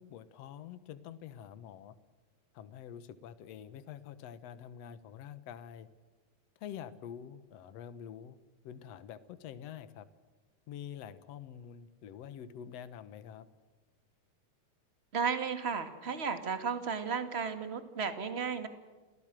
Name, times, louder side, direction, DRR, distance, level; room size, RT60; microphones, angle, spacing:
voice 1, 0.0-2.0 2.5-5.9 6.6-8.4 8.6-10.1 10.7-13.5, left 9 dB, 65° left, 13 dB, 2.2 m, -46 dB
voice 2, 15.1-18.7, right 6 dB, 25° right, 8 dB, 1.9 m, -34 dB
29.0 x 17.0 x 7.6 m, 1.3 s
omnidirectional pair, 3.3 m